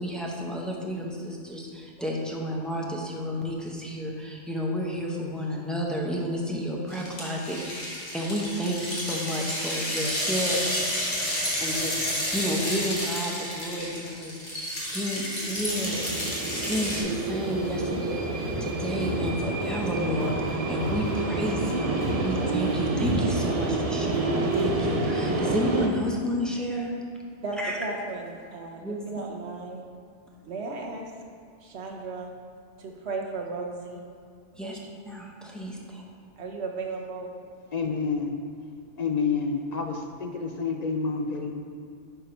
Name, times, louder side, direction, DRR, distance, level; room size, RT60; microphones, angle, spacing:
voice 1, 0.0-10.6 11.6-14.3 14.9-16.2 16.6-26.9 27.6-27.8 28.8-29.2 34.6-34.8 35.0-36.0, equal, ahead, -2 dB, 0.8 m, -31 dB
sound 1, 6.9-17.0, left 1 dB, 35° left, 1.6 m, -31 dB
sound 2, 10.0-13.2 15.5-25.9, right 2 dB, 40° right, 0.6 m, -29 dB
Walk footsteps, 18.4-18.7 19.0-19.3 19.6-19.9 20.2-20.5 20.8-21.7 22.0-22.3 22.6-22.7 23.0-23.5 24.0-24.2 24.5-24.8, left 2 dB, 90° left, 2.1 m, -35 dB
voice 2, 27.4-29.9 30.4-31.1 31.6-32.3 32.8-34.0 34.6-34.8 36.4-37.3, right 3 dB, 70° right, 1 dB, 1.2 m, -35 dB
voice 3, 37.7-38.4 39.0-41.5, left 5 dB, 50° left, 3 dB, 0.5 m, -28 dB
7.6 x 4.5 x 5.3 m, 2.2 s
omnidirectional pair, 1.2 m